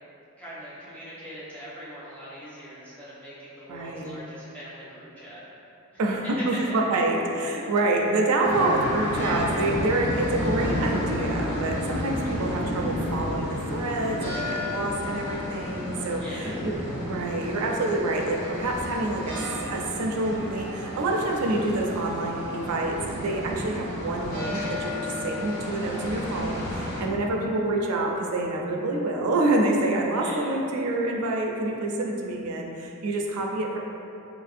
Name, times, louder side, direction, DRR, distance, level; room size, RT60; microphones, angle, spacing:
voice 1, 0.4-5.4 5.9-6.0 6.4-7.0 16.2-16.7 30.2-30.5, equal, 5° left, -11 dB, 0.8 m, -41 dB
voice 2, 3.7-4.1 6.0-33.8, right 2 dB, 75° right, 0 dB, 0.4 m, -27 dB
sound 1, 8.4-27.0, left 1 dB, 50° left, 1.4 m, -31 dB
3.0 x 2.5 x 2.5 m, 2.9 s
head